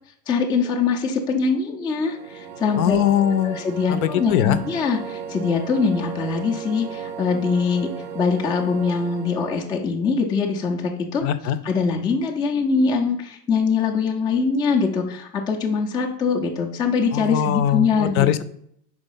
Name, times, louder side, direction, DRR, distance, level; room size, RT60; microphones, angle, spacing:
voice 1, 0.3-3.0 3.4-11.2 11.6-18.4, left 5 dB, 10° left, 0 dB, 0.4 m, -23 dB
sound 1, 2.0-9.8, right 7 dB, 80° right, 0.8 m, -36 dB
voice 2, 2.8-3.6 3.9-4.6 11.2-11.6 17.1-18.4, left 10 dB, 60° left, 13 dB, 0.6 m, -21 dB
5.0 x 4.0 x 5.4 m, 0.69 s
hypercardioid pair, 120°, 49 cm